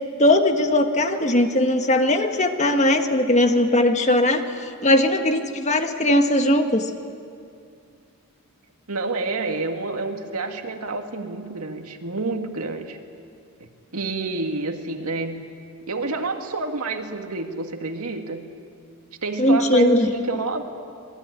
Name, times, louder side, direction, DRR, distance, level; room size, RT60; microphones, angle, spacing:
voice 1, 0.2-6.9 19.4-20.1, left 1 dB, 30° left, 6 dB, 1.5 m, -19 dB
voice 2, 8.9-13.0 13.9-15.5 15.9-18.5 19.2-20.6, right 3 dB, 90° right, 4 dB, 2.2 m, -28 dB
27.0 x 20.0 x 9.8 m, 2.4 s
head